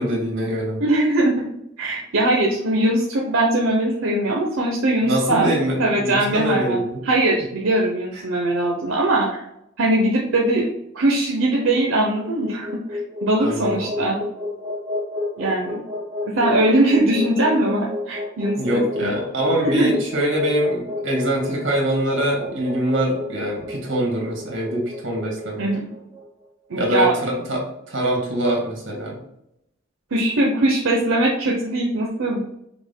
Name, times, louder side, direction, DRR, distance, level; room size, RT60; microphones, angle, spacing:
voice 1, 0.0-0.8 5.0-7.0 13.4-14.1 18.6-25.7 26.7-29.2, right 1 dB, 65° right, -1 dB, 1.6 m, -24 dB
voice 2, 0.8-1.4 1.8-5.5 5.8-6.8 7.0-9.4 9.8-10.7 10.9-14.2 15.4-15.8 16.2-19.1 19.6-19.9 25.6-25.9 26.7-27.1 30.1-32.4, right 1 dB, 85° right, -2 dB, 0.7 m, -21 dB
sound 1, 12.0-26.3, left 2 dB, 15° right, 1.0 m, -31 dB
5.9 x 2.2 x 3.6 m, 0.80 s
head